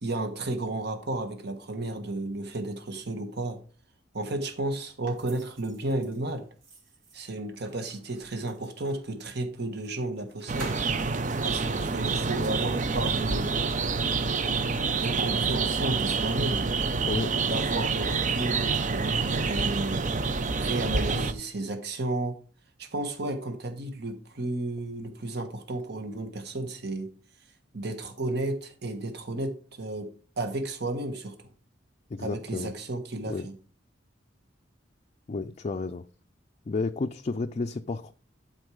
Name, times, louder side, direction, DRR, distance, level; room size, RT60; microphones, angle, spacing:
voice 1, 0.0-3.6 4.1-6.5 7.1-10.8 11.4-13.6 15.0-16.6 17.4-20.0 20.6-22.4 22.8-27.1 27.7-30.1 30.4-31.5 32.2-33.5, right 2 dB, 60° right, 1.4 m, -33 dB
sound 1, 5.0-9.1 9.8-9.9 10.2-12.2, right 2 dB, 80° right, 2.8 m, -48 dB
sound 2, 10.5-21.3, right 4 dB, 40° right, 0.6 m, -27 dB
voice 2, 32.1-32.7 33.3-33.5 35.3-36.0 36.7-38.1, left 3 dB, 35° left, 0.4 m, -31 dB
11.5 x 4.5 x 4.8 m
head